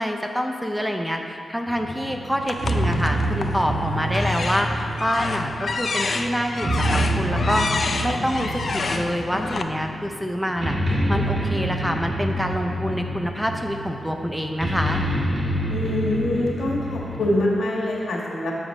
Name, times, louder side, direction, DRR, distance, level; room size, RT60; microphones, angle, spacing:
voice 1, 0.0-15.0, equal, 5° right, 4 dB, 0.5 m, -26 dB
sound 1, 1.7-17.3, equal, 40° right, 1.9 m, -27 dB
sound 2, 2.5-3.6 4.1-9.6, left 4 dB, 60° left, 0.4 m, -28 dB
voice 2, 15.7-18.5, left 1 dB, 75° left, -4 dB, 1.5 m, -24 dB
7.1 x 5.0 x 5.3 m, 2.5 s
cardioid pair, 80°, 0 cm